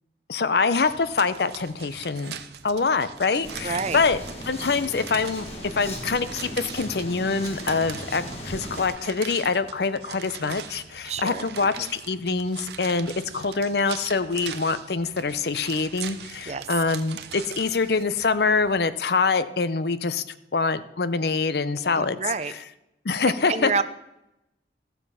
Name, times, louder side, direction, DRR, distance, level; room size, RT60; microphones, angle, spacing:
voice 1, 0.3-2.4 2.6-4.2 4.5-5.5 5.7-20.2 20.5-22.2 22.5-22.6 23.0-23.8, left 4 dB, 65° left, 14 dB, 0.6 m, -25 dB
sound 1, 0.8-18.8, right 8 dB, 65° right, 0.7 m, -41 dB
sound 2, 3.4-8.9, equal, 35° left, 1.9 m, -37 dB
voice 2, 3.6-4.0 11.1-11.4 11.8-11.9 16.5-16.7 21.9-22.5 23.5-23.8, right 5 dB, 35° right, 14 dB, 0.5 m, -28 dB
14.5 x 6.9 x 5.6 m, 0.88 s
head